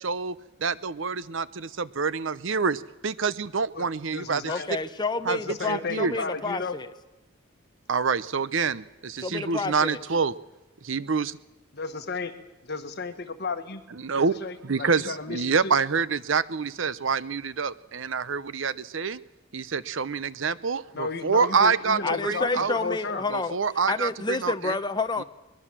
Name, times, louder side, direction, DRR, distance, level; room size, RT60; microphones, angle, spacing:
voice 1, 0.0-4.5 5.3-6.2 7.9-10.3 10.8-11.4 14.0-14.4 14.6-19.2 19.5-22.0 22.2-22.8 23.3-24.8, right 5 dB, 70° right, 18 dB, 0.7 m, -27 dB
voice 2, 3.7-4.7 5.3-6.8 11.7-12.4 12.6-13.8 14.4-15.8 20.9-23.2, left 4 dB, 55° left, 7 dB, 1.7 m, -33 dB
voice 3, 4.5-6.9 9.2-10.0 22.0-23.6 23.9-25.2, left 3 dB, 20° left, 9 dB, 1.0 m, -29 dB
22.5 x 22.0 x 7.5 m, 1.0 s
head